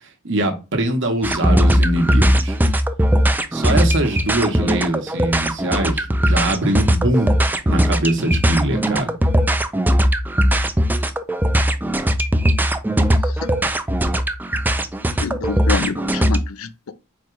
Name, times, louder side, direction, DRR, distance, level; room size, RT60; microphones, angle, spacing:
voice 1, 0.2-2.6 3.5-7.3 7.7-9.1, right 1 dB, 55° right, 1.1 m, -22 dB
sound 1, 1.2-16.4, equal, 10° right, 0.3 m, -18 dB
voice 2, 15.2-16.9, left 5 dB, 65° left, 0.5 m, -27 dB
4.4 x 2.3 x 4.5 m
head